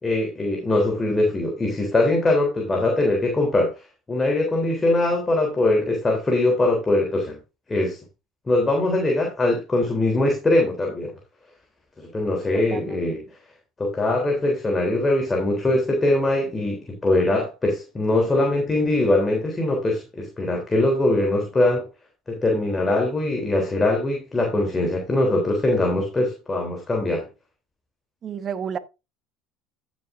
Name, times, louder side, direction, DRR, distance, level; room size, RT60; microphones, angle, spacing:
voice 1, 0.0-3.7 4.1-7.4 7.7-8.0 8.5-11.1 12.0-13.2 13.8-21.9 22.3-27.3, left 2 dB, 20° left, 3.4 m, -22 dB
voice 2, 12.5-13.1 28.2-28.8, right 7 dB, 40° right, 1.4 m, -31 dB
14.5 x 7.2 x 2.6 m
hypercardioid pair, 75°, 0 cm